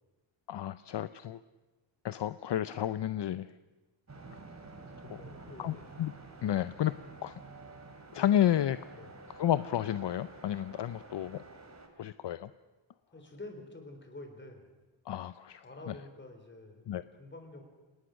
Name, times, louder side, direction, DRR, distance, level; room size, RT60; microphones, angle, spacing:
voice 1, 0.5-1.4 2.0-3.5 5.0-5.2 5.6-6.1 6.4-6.9 7.2-7.4 8.1-8.8 9.3-11.4 12.0-12.5 15.1-15.9 16.9-17.0, left 11 dB, 60° left, 13 dB, 0.6 m, -31 dB
sound 1, 4.1-11.9, right 3 dB, 35° right, 2.9 m, -50 dB
voice 2, 5.1-5.9 8.1-8.3 8.9-9.2 13.1-14.7 15.6-17.6, left 2 dB, 25° left, 5 dB, 3.9 m, -48 dB
28.5 x 19.5 x 6.4 m, 1.2 s
wide cardioid pair, 165°, 47 cm